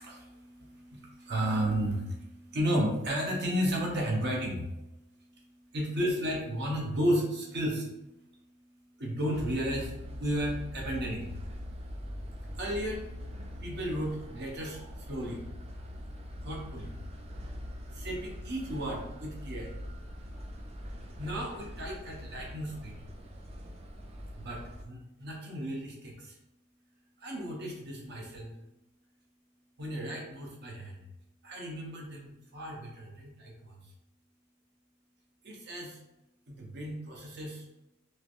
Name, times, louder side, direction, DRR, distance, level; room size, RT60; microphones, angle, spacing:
voice 1, 0.0-11.4 12.5-13.0 13.6-15.4 16.4-16.9 17.9-19.7 21.2-23.0 24.4-26.4 27.2-28.5 29.8-31.0 31.4-33.8 35.4-36.0 36.5-37.6, equal, 50° right, -1 dB, 0.8 m, -34 dB
sound 1, 9.3-24.8, equal, 30° right, 0.4 m, -43 dB
3.1 x 3.1 x 2.5 m, 0.94 s
head